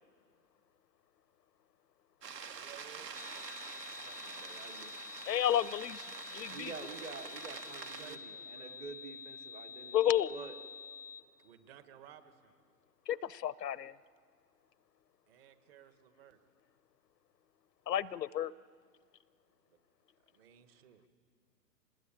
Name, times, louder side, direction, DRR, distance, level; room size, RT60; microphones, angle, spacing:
sound 1, 2.2-8.2, right 6 dB, 80° right, 1.9 m, -47 dB
voice 1, 2.3-3.1 7.7-8.8 11.4-12.5 15.3-16.4 19.7-19.8 20.3-21.1, right 10 dB, 35° right, 10 dB, 1.6 m, -57 dB
sound 2, 3.1-11.2, left 6 dB, 35° left, 0.5 m, -48 dB
voice 2, 3.9-5.0 6.5-10.0 10.3-10.6, right 4 dB, 10° right, 9 dB, 0.7 m, -48 dB
voice 3, 5.3-6.0 6.3-6.7 9.9-10.3 13.1-13.9 17.9-18.5, left 11 dB, 75° left, 20 dB, 0.7 m, -31 dB
25.5 x 20.0 x 8.9 m, 2.1 s
hypercardioid pair, 135°, 49 cm